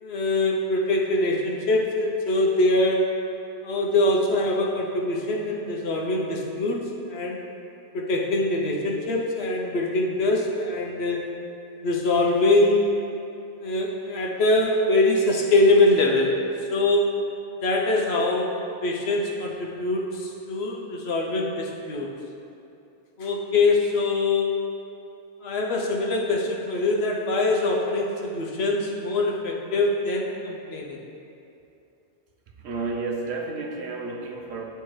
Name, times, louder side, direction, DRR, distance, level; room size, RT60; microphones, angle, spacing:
voice 1, 0.0-3.2 3.6-7.4 7.9-11.2 11.8-12.9 13.6-16.4 16.7-17.2 17.6-22.1 23.2-24.6 25.4-31.0, left 2 dB, 70° left, -1 dB, 1.0 m, -23 dB
voice 2, 32.6-34.6, right 3 dB, 75° right, 2 dB, 0.9 m, -31 dB
10.0 x 3.4 x 3.1 m, 2.7 s
omnidirectional pair, 1.1 m